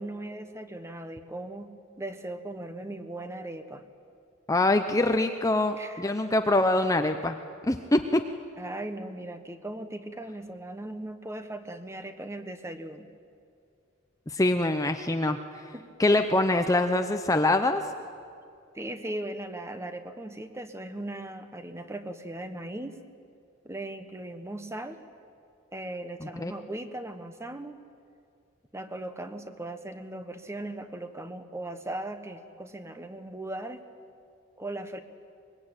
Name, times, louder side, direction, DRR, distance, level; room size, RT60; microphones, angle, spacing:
voice 1, 0.0-1.7 2.0-3.8 5.8-6.0 8.6-13.1 15.7-15.9 16.1-16.3 18.7-23.0 23.6-25.0 25.7-27.8 28.7-33.8 34.6-35.0, right 1 dB, 15° right, 9 dB, 1.2 m, -38 dB
voice 2, 4.5-7.4 7.6-8.2 14.3-15.4 16.0-17.8 26.2-26.5, left 2 dB, 15° left, 7 dB, 0.7 m, -24 dB
23.5 x 21.5 x 9.0 m, 2.4 s
head